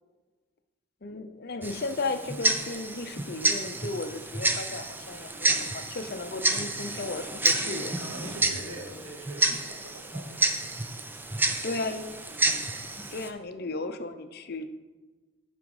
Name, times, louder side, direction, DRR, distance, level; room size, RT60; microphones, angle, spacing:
voice 1, 1.0-8.0 11.6-12.1 13.1-14.7, left 3 dB, 45° left, 9 dB, 0.6 m, -35 dB
Tick-tock, 1.6-13.3, right 2 dB, 10° right, 0.4 m, -30 dB
voice 2, 7.5-10.8, right 1 dB, 80° right, 0 dB, 2.0 m, -44 dB
8.9 x 6.0 x 4.8 m, 1.3 s
head